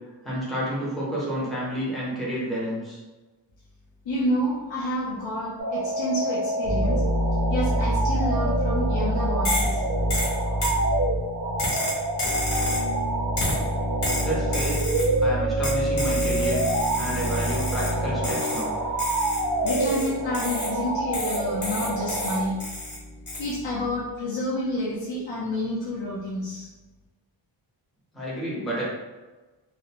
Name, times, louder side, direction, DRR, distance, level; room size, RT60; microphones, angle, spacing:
voice 1, 0.2-3.0 14.2-14.8 15.2-16.6 17.0-18.8 28.1-28.8, right 1 dB, ahead, -7 dB, 0.6 m, -30 dB
voice 2, 4.1-7.0 7.5-9.8 19.6-22.6 23.4-26.7, equal, 75° left, -7 dB, 0.7 m, -29 dB
sound 1, 5.6-22.4, right 2 dB, 40° right, 0.4 m, -28 dB
sound 2, 6.6-24.0, equal, 35° left, 0.7 m, -29 dB
sound 3, 9.4-9.8 10.1-10.8 11.6-12.9 13.4-13.7 14.0-15.1 15.6-18.0 18.2-18.7 19.0-20.8 21.1-23.0 23.3-23.5, left 1 dB, 60° left, 1.0 m, -31 dB
2.4 x 2.1 x 2.8 m, 1.2 s
wide cardioid pair, 180°, 45 cm